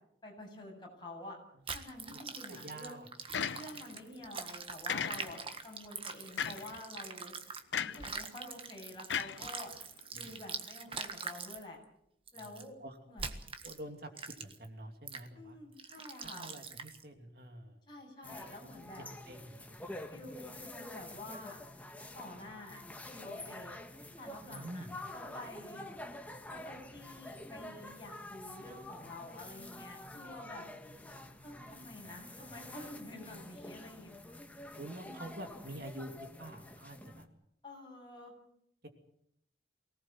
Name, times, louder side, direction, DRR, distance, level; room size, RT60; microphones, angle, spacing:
voice 1, 0.2-1.4 1.7-3.0 3.5-7.3 7.8-9.7 10.1-11.8 12.3-12.7 13.1-13.3 15.3-16.4 17.9-19.0 20.1-21.6 22.1-23.8 24.2-24.9 25.1-25.9 26.5-30.6 31.4-34.1 34.9-35.3 37.6-38.3, left 2 dB, 25° left, -1 dB, 7.7 m, -49 dB
sound 1, 1.7-7.6 7.9-11.6 12.3-12.6 13.2-13.8 14.2-14.7 15.1-15.3 15.8-17.0, right 5 dB, 30° right, 1.6 m, -43 dB
voice 2, 2.5-3.1 10.1-10.3 12.4-13.0 13.6-15.6 16.2-17.8 19.0-19.6 19.9-20.1 24.5-24.9 32.0-32.1 32.5-32.8 34.8-37.3 38.8-38.9, right 1 dB, 55° right, 5 dB, 2.9 m, -47 dB
sound 2, 3.3-4.0 4.9-5.6 6.4-6.8 7.7-8.1 9.1-10.0, left 7 dB, 80° left, 0.8 m, -36 dB
sound 3, 18.2-37.2, left 1 dB, 10° left, 1.5 m, -48 dB
24.0 x 18.5 x 7.7 m, 0.74 s
head